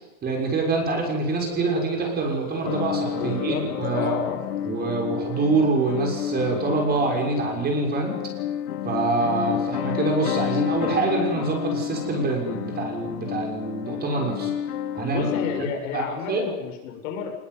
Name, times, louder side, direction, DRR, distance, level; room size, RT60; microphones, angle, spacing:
voice 1, 0.2-4.1 4.7-8.1 8.8-14.5 15.0-15.2 15.9-16.4, right 3 dB, 20° right, 1 dB, 6.5 m, -25 dB
Telephone, 1.4-3.4, right 7 dB, 20° left, 5.9 m, -37 dB
sound 1, 2.6-15.6, left 10 dB, 75° left, 2.9 m, -30 dB
voice 2, 3.2-4.8 15.1-17.3, left 7 dB, 60° left, 2 dB, 7.4 m, -31 dB
23.5 x 21.0 x 9.7 m, 0.98 s
supercardioid pair, 155°, 45 cm